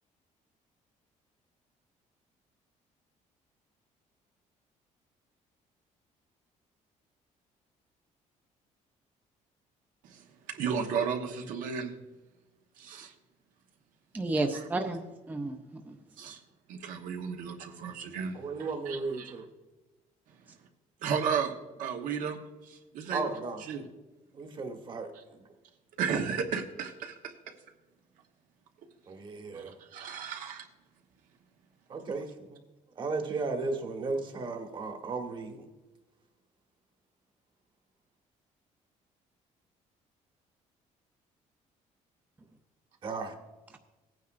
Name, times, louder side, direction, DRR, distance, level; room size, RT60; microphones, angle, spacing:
voice 1, 10.0-12.0 12.8-13.1 14.5-14.6 16.2-16.4 16.7-19.4 20.3-20.4 21.0-23.9 25.1-25.2 26.0-27.5 29.5-30.7, right 6 dB, 80° right, 4 dB, 1.2 m, -34 dB
voice 2, 14.1-15.0 15.3-15.9, right 2 dB, 10° right, 5 dB, 0.5 m, -31 dB
voice 3, 18.3-19.4 23.1-23.6 24.3-25.1 29.1-29.7 31.9-32.6 33.0-35.6 43.0-43.3, right 3 dB, 35° right, 4 dB, 1.3 m, -35 dB
17.0 x 9.3 x 2.5 m, 1.1 s
cardioid pair, 150°, 14 cm